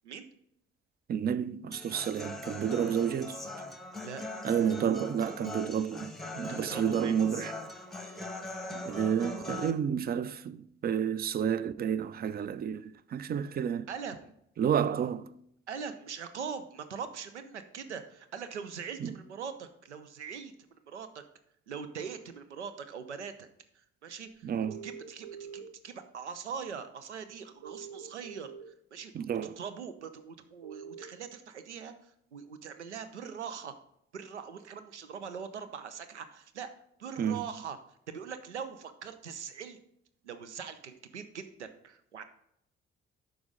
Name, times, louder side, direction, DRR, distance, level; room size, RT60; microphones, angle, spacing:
voice 1, 1.1-3.4 4.4-7.5 8.7-13.9 14.6-15.3 19.0-19.1 24.4-24.8 29.1-29.6 37.2-37.4, right 8 dB, 30° right, 0.5 m, -30 dB
Human voice / Acoustic guitar, 1.7-9.7, left 2 dB, ahead, 1.0 m, -41 dB
voice 2, 6.5-7.1 13.9-14.3 15.7-20.5 20.9-21.2 21.7-23.5 23.7-24.5 24.8-29.1 29.6-33.8 34.1-36.7 37.0-37.8 38.1-39.8 40.2-42.2, right 6 dB, 85° right, 0.5 m, -42 dB
sound 1, 24.6-25.6 27.6-28.6 30.6-31.0, right 7 dB, 50° right, 1.1 m, -44 dB
9.3 x 6.3 x 3.8 m
figure-of-eight pair, 40°, 34 cm